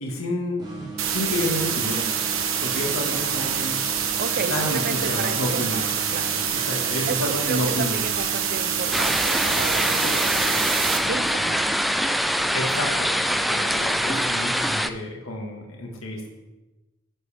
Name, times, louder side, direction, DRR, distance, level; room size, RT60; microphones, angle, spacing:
voice 1, 0.0-2.1 2.6-3.8 4.5-5.8 6.7-8.0 12.5-16.3, left 1 dB, 75° left, 0 dB, 1.8 m, -30 dB
sound 1, 0.6-12.3, right 4 dB, 25° right, 3.9 m, -38 dB
sound 2, 1.0-11.0, right 8 dB, 70° right, 1.2 m, -26 dB
voice 2, 2.9-3.7 4.2-6.4 7.1-10.6 11.0-11.7 12.7-12.9, right 4 dB, 50° right, 12 dB, 0.6 m, -33 dB
sound 3, 8.9-14.9, equal, ahead, 0.4 m, -24 dB
10.5 x 10.5 x 3.5 m, 1.1 s
head